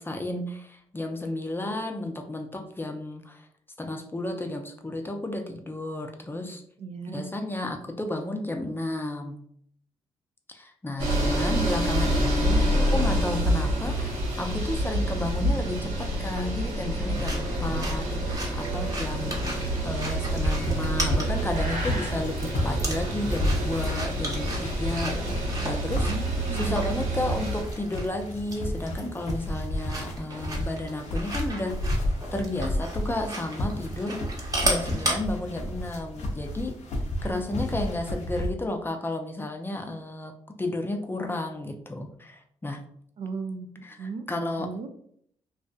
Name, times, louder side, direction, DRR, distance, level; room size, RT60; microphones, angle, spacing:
voice 1, 0.0-3.5 3.8-6.6 7.0-9.4 10.5-19.6 19.8-26.1 26.5-31.8 32.3-34.2 34.6-36.7 37.2-42.8 43.8-44.9, left 2 dB, 20° left, 5 dB, 0.5 m, -32 dB
voice 2, 6.8-7.4 26.1-26.8 43.2-44.3 44.6-44.9, right 4 dB, 60° right, 6 dB, 0.4 m, -36 dB
sound 1, 11.0-27.6, right 1 dB, 85° right, 0.9 m, -27 dB
sound 2, 17.1-35.1, right 1 dB, 30° right, 0.9 m, -36 dB
sound 3, 20.1-38.5, left 1 dB, 75° left, 0.6 m, -32 dB
2.6 x 2.3 x 2.2 m, 0.65 s
supercardioid pair, 60°, 12 cm